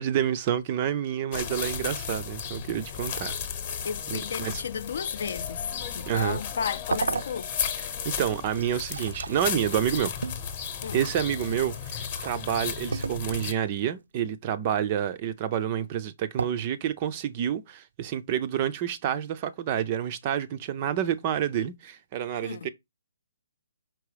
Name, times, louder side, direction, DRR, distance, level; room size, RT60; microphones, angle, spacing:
voice 1, 0.0-3.4 4.1-4.6 6.1-6.4 8.0-10.1 10.9-22.7, right 10 dB, 20° right, 0.5 m, -28 dB
sound 1, 1.3-13.5, left 7 dB, 20° left, 1.0 m, -34 dB
voice 2, 3.8-7.5 10.8-11.0 22.4-22.7, left 7 dB, 45° left, 0.5 m, -33 dB
sound 2, 6.9-7.8 8.3-12.4 12.9-13.6 16.4-16.5, right 5 dB, 70° right, 0.5 m, -35 dB
6.0 x 4.7 x 4.9 m
hypercardioid pair, 175°, 0 cm